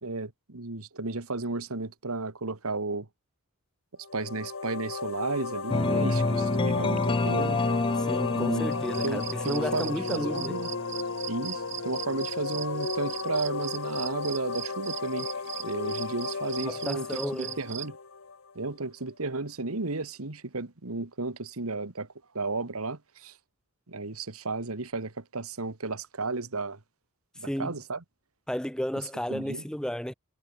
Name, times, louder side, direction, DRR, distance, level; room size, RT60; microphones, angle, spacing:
voice 1, 0.0-3.1 4.1-7.6 8.3-8.7 9.0-10.7 11.3-15.3 15.6-18.0 18.6-22.1 22.3-23.4 23.9-26.8 27.4-28.0 29.3-29.6, right 3 dB, 90° right, 1.9 m, -33 dB
sound 1, 4.0-18.7, left 4 dB, 65° left, 1.2 m, -34 dB
sound 2, 5.7-11.6, left 3 dB, 25° left, 0.4 m, -29 dB
voice 2, 8.0-10.5 16.7-17.6 27.4-27.7 28.5-30.1, equal, 5° left, 0.9 m, -33 dB
sound 3, 8.7-17.9, right 12 dB, 55° right, 5.7 m, -40 dB
head